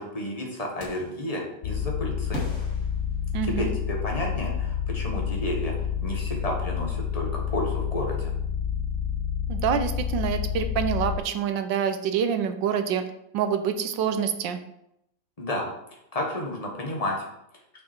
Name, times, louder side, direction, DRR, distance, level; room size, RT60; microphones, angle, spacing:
voice 1, 0.0-2.4 3.4-8.3 15.4-15.7 16.1-17.3, left 1 dB, 20° left, -1 dB, 1.4 m, -31 dB
sound 1, 0.8-1.3 2.3-3.8, equal, 40° left, 2.0 m, -40 dB
sound 2, 1.6-11.2, left 7 dB, 70° left, 1.2 m, -29 dB
voice 2, 3.3-3.7 9.5-13.0 13.3-14.6, right 8 dB, 75° right, 9 dB, 1.4 m, -26 dB
6.5 x 5.9 x 4.5 m, 0.79 s
omnidirectional pair, 2.1 m